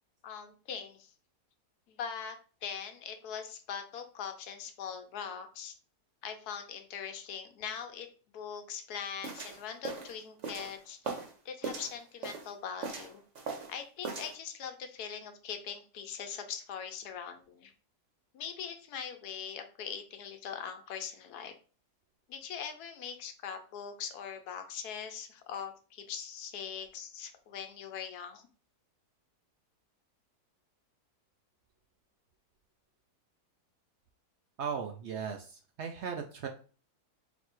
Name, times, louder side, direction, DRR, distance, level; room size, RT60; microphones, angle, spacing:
voice 1, 0.2-1.1 1.9-2.4 2.6-5.8 6.2-8.1 8.3-11.2 11.4-13.2 13.7-17.7 18.3-21.5 22.3-28.5, left 7 dB, 80° left, 6 dB, 1.2 m, -41 dB
sound 1, 9.2-11.3 11.6-12.5 12.8-13.8 14.0-14.3, right 4 dB, 55° right, 1.2 m, -39 dB
voice 2, 34.6-36.5, right 6 dB, 70° right, 4 dB, 0.6 m, -37 dB
4.0 x 2.6 x 4.4 m, 0.38 s
omnidirectional pair, 1.7 m